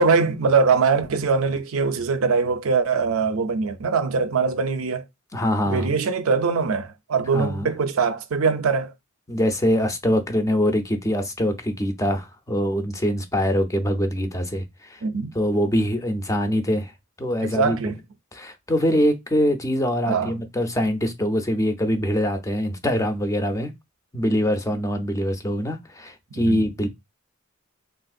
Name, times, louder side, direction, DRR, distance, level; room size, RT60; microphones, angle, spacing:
voice 1, 0.0-5.0 5.6-8.9 15.0-15.3 17.4-18.0 20.1-20.3 26.3-26.6, right 5 dB, 80° right, 0.5 m, -22 dB
voice 2, 5.3-5.9 7.3-7.7 9.3-14.6 14.9-15.0 15.3-16.9 17.2-17.9 18.3-23.7 24.1-26.9, equal, 15° left, 0.5 m, -23 dB
3.4 x 2.6 x 2.4 m
head